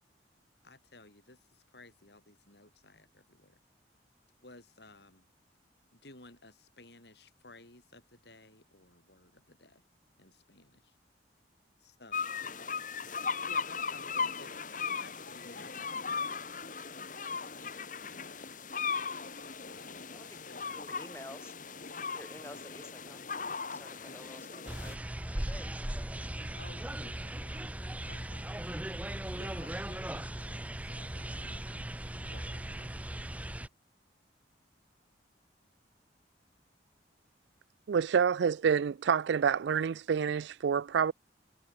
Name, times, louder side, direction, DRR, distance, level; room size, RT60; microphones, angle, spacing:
voice 1, 0.6-3.6 4.4-5.3 5.9-9.8 10.2-10.9 11.8-12.2 13.5-16.7 17.3-18.7 19.7-21.2 26.6-27.6 28.1-28.4 29.4-31.7 32.2-32.9, left 2 dB, 65° left, 5.1 m, -56 dB
sound 1, 12.1-24.9, left 5 dB, 45° left, 2.2 m, -38 dB
voice 2, 20.7-21.5 22.1-23.2 23.7-25.7, left 1 dB, 15° left, 6.5 m, -50 dB
sound 2, 24.7-33.7, right 1 dB, 10° right, 0.6 m, -38 dB
voice 3, 37.9-41.1, right 7 dB, 70° right, 0.4 m, -28 dB
head